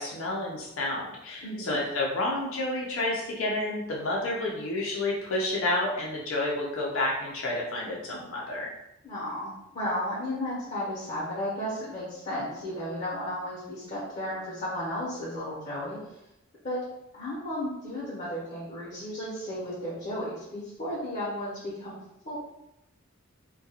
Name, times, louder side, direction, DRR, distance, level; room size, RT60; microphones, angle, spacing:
voice 1, 0.0-8.7, left 2 dB, 80° left, -3 dB, 0.5 m, -30 dB
voice 2, 1.4-1.8 9.0-16.0 16.6-16.8 17.1-22.0 22.2-22.4, left 1 dB, 35° left, -8 dB, 0.8 m, -34 dB
2.3 x 2.2 x 2.8 m, 0.86 s
head